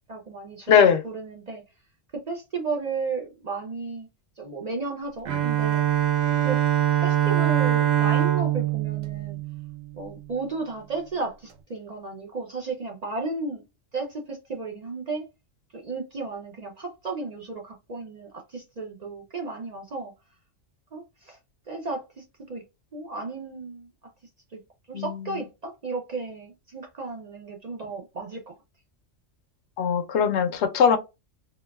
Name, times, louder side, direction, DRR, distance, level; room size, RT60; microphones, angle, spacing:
voice 1, 0.1-1.6 2.1-4.1 4.4-5.8 6.4-6.6 7.0-9.4 9.9-13.6 13.9-15.3 15.7-20.1 20.9-21.4 21.7-22.6 22.9-23.9 24.5-24.6 24.9-28.5, right 3 dB, 60° right, 0.4 m, -34 dB
voice 2, 0.7-1.0 24.9-25.1 29.8-31.0, left 7 dB, 70° left, 0.8 m, -20 dB
Bowed string instrument, 5.3-10.1, right 12 dB, 80° right, 1.1 m, -23 dB
3.8 x 2.3 x 2.2 m
omnidirectional pair, 1.3 m